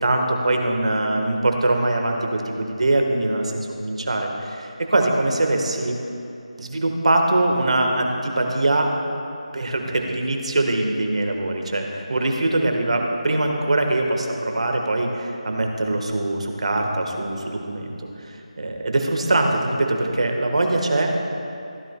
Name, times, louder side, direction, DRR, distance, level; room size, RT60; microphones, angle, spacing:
voice 1, 0.0-6.0 6.6-8.9 9.5-17.9 18.3-21.1, right 2 dB, 65° right, 3 dB, 1.4 m, -22 dB
15.5 x 10.5 x 2.3 m, 2.7 s
figure-of-eight pair, 165°, 4 cm